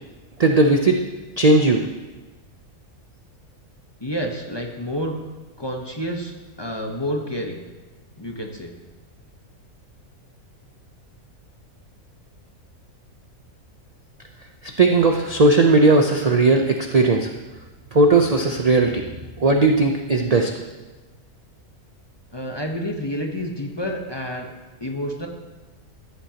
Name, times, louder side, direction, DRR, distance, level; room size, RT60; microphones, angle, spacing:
voice 1, 0.4-1.0 1.4-1.8 14.8-17.3 17.9-19.0 19.4-20.5, right 2 dB, 45° right, 3 dB, 0.5 m, -17 dB
voice 2, 4.0-5.2 5.6-7.6 8.2-8.7 22.3-24.5 24.8-25.3, equal, 20° left, 1 dB, 0.8 m, -29 dB
14.0 x 10.5 x 2.9 m, 1.2 s
omnidirectional pair, 1.5 m